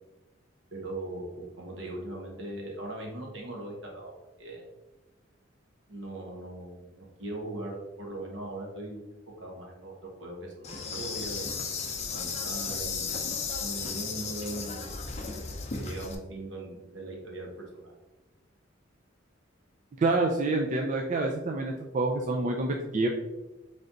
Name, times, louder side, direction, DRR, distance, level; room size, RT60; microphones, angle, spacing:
voice 1, 0.7-4.1 4.4-4.6 5.9-9.0 9.4-11.6 12.1-13.2 13.6-14.9 15.3-15.4 15.7-17.9, right 1 dB, 70° right, -1 dB, 1.3 m, -40 dB
Insect, 10.6-16.2, left 5 dB, 35° left, 0.6 m, -34 dB
voice 2, 20.0-23.1, right 2 dB, 40° right, 1 dB, 0.4 m, -27 dB
3.7 x 3.3 x 4.0 m, 1.0 s
head